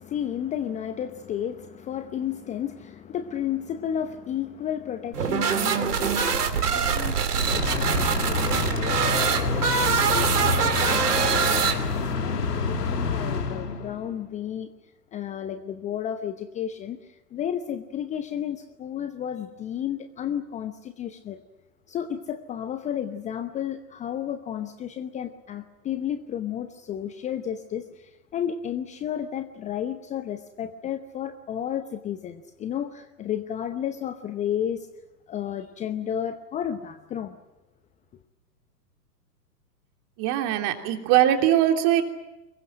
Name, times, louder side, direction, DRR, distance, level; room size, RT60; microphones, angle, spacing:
voice 1, 0.0-14.7 15.1-21.4 21.9-34.9 35.3-37.4, left 9 dB, 15° left, 10 dB, 0.8 m, -32 dB
sound 1, 5.1-12.1, right 6 dB, 65° right, 3.2 m, -24 dB
sound 2, 7.4-14.2, left 4 dB, 70° left, 2.6 m, -28 dB
voice 2, 40.2-42.0, right 12 dB, 35° right, 5 dB, 3.1 m, -21 dB
25.0 x 22.5 x 8.9 m, 0.96 s
figure-of-eight pair, 110°, 49 cm